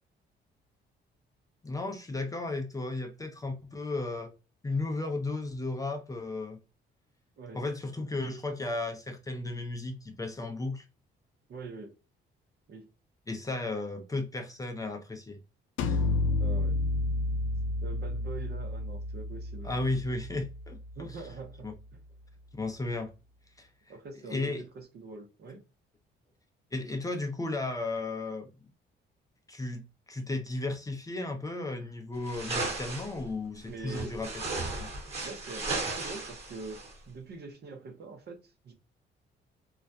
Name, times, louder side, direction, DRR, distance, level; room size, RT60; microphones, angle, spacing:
voice 1, 1.6-4.3 4.6-6.6 7.5-10.8 13.3-15.4 15.9-16.0 19.6-21.2 21.6-21.7 22.5-23.1 23.6-23.7 24.3-24.6 26.7-28.5 29.5-34.9, left 2 dB, 15° left, 0.5 m, -34 dB
voice 2, 11.5-12.0 12.7-12.9 16.4-16.8 17.8-19.7 21.0-21.7 23.9-25.6 33.6-34.2 35.2-38.7, right 3 dB, 55° right, 0.7 m, -44 dB
sound 1, 15.8-21.4, left 2 dB, 85° left, 0.4 m, -31 dB
sound 2, 32.2-33.2 33.9-36.9, right 3 dB, 30° right, 1.2 m, -35 dB
2.3 x 2.1 x 2.5 m
cardioid pair, 90°, 20 cm